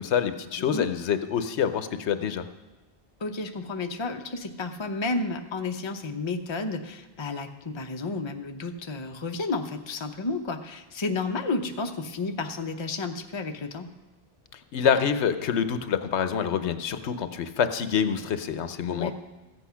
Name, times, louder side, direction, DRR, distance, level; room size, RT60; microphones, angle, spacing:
voice 1, 0.0-2.4 14.7-19.1, left 7 dB, 85° left, 10 dB, 1.0 m, -26 dB
voice 2, 0.6-0.9 3.2-13.9 18.9-19.1, left 3 dB, 30° left, 5 dB, 0.7 m, -31 dB
14.5 x 8.3 x 5.7 m, 1.1 s
omnidirectional pair, 1.1 m